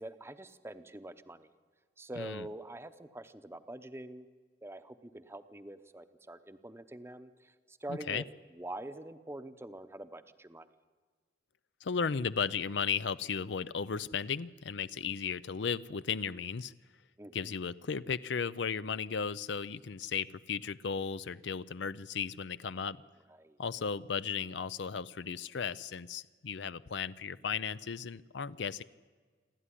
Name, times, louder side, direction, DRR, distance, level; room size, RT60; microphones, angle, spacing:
voice 1, 0.0-1.5 2.0-4.3 4.6-8.2 8.6-10.7 17.2-17.5 23.4-23.6, right 1 dB, 15° right, 10 dB, 0.8 m, -45 dB
voice 2, 7.9-8.2 11.8-16.7 17.3-23.0 23.6-28.8, left 6 dB, 75° left, 15 dB, 0.6 m, -35 dB
27.5 x 12.5 x 10.0 m, 1.5 s
head